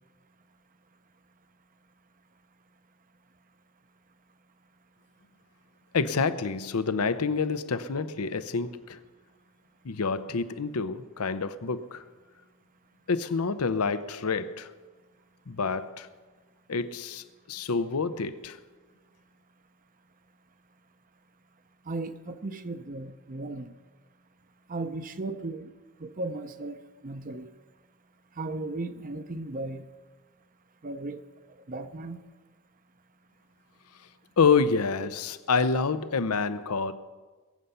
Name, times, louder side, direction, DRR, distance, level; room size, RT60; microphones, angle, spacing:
voice 1, 5.9-9.0 9.8-12.0 13.1-14.7 15.5-16.1 16.7-18.6 34.4-36.9, left 5 dB, 80° left, 13 dB, 0.7 m, -27 dB
voice 2, 21.8-23.7 24.7-25.7 26.0-27.5 28.4-29.8 30.8-31.2 31.6-32.2, right 2 dB, 40° right, 10 dB, 0.7 m, -36 dB
21.5 x 7.9 x 5.6 m, 1.3 s
head